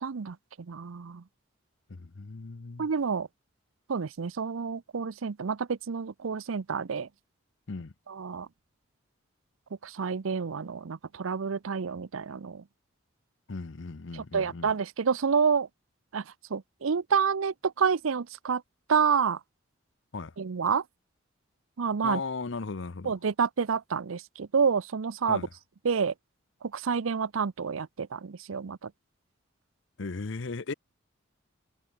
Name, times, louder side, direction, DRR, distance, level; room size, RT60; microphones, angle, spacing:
voice 1, 0.0-0.4 0.7-1.2 2.8-3.3 3.9-7.1 8.1-8.5 9.8-12.6 14.1-15.7 16.1-16.2 16.5-18.6 18.9-19.4 20.4-20.8 21.8-22.2 23.1-25.4 25.8-26.1 26.7-28.9, right 6 dB, 90° right, 0.6 m, -28 dB
voice 2, 1.9-2.9 7.7-7.9 13.5-14.7 20.1-20.3 22.0-23.2 25.3-25.5 30.0-30.7, left 4 dB, 65° left, 0.7 m, -36 dB
head